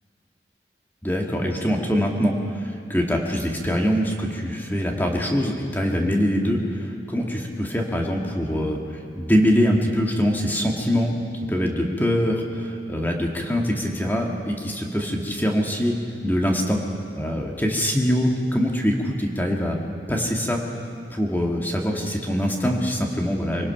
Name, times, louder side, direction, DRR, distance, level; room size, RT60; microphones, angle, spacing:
voice 1, 1.0-8.8 9.1-11.1 11.5-16.0 16.2-16.8 17.2-19.8 20.1-20.6 21.1-23.7, equal, 10° left, 0 dB, 1.8 m, -23 dB
25.0 x 18.5 x 5.8 m, 2.3 s
head